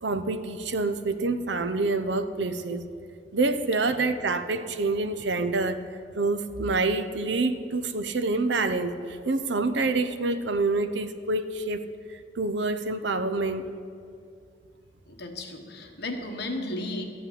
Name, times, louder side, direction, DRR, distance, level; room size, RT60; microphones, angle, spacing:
voice 1, 0.0-2.8 3.3-5.8 6.1-11.8 12.1-13.7, right 3 dB, 65° right, 10 dB, 0.7 m, -27 dB
voice 2, 15.1-17.1, left 2 dB, 60° left, 3 dB, 1.4 m, -34 dB
13.5 x 5.8 x 9.6 m, 2.3 s
head